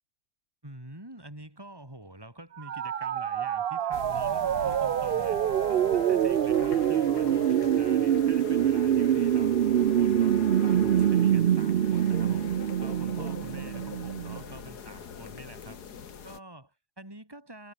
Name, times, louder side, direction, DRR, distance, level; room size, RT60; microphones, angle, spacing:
voice 1, 0.6-5.4 5.7-10.3 10.6-15.8 16.2-17.7, right 1 dB, 15° right, 5.6 m, -47 dB
sound 1, 2.6-14.4, right 10 dB, 85° right, 0.5 m, -25 dB
Wind instrument woodwind instrument, 2.7-6.5, left 2 dB, 50° left, 7.7 m, -46 dB
sound 2, 3.9-16.4, left 7 dB, 70° left, 2.2 m, -42 dB
omnidirectional pair, 1.8 m